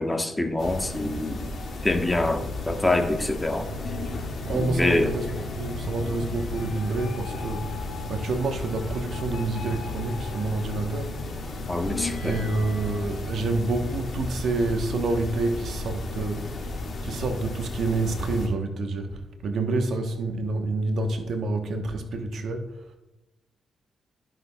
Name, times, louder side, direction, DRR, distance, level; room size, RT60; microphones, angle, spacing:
voice 1, 0.0-1.5 1.8-3.7 4.5-5.1 11.7-12.4, left 2 dB, 20° left, 5 dB, 1.2 m, -25 dB
sound 1, 0.6-18.5, left 2 dB, 55° left, 2.1 m, -34 dB
sound 2, 3.6-13.0, left 3 dB, 80° left, 2.2 m, -41 dB
voice 2, 4.4-5.3 5.5-11.1 12.2-22.8, right 3 dB, 65° right, 6 dB, 1.1 m, -28 dB
13.5 x 5.8 x 2.3 m, 1.0 s
hypercardioid pair, 40°, 0 cm